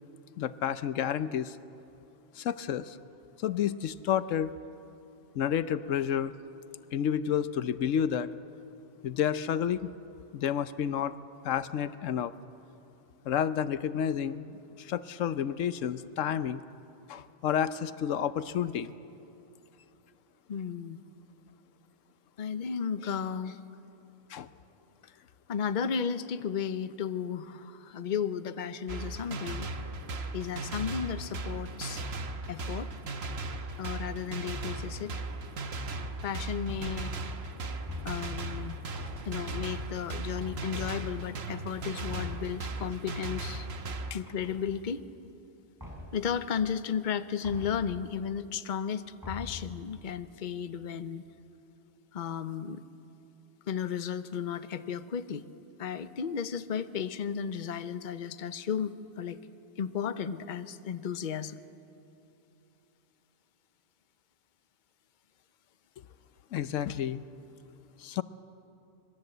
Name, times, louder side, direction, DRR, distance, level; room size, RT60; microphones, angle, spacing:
voice 1, 0.4-1.6 2.3-3.0 3.4-4.5 5.3-6.3 6.9-8.3 9.0-9.9 10.3-11.1 11.4-12.3 13.3-16.6 17.1-18.9 24.3-24.5 44.1-44.2 66.5-67.2 68.0-68.2, left 9 dB, 85° left, 14 dB, 1.1 m, -30 dB
voice 2, 20.5-21.0 22.4-23.6 25.0-25.1 25.5-29.7 30.3-32.0 32.5-32.9 33.8-35.1 36.2-37.1 38.0-38.8 39.2-43.7 44.1-45.0 46.1-51.2 52.1-52.8 53.7-55.5 55.8-59.4 59.8-61.6, left 7 dB, 45° left, 11 dB, 0.9 m, -34 dB
sound 1, 28.9-44.2, right 2 dB, 55° right, 1.4 m, -37 dB
sound 2, 36.7-37.2 37.9-38.5 38.9-39.6 40.4-40.9 42.1-42.6 44.2-45.0 45.8-46.3 47.4-48.0 49.2-49.8, left 2 dB, 15° right, 4.3 m, -43 dB
26.0 x 21.0 x 7.9 m, 3.0 s
omnidirectional pair, 1.3 m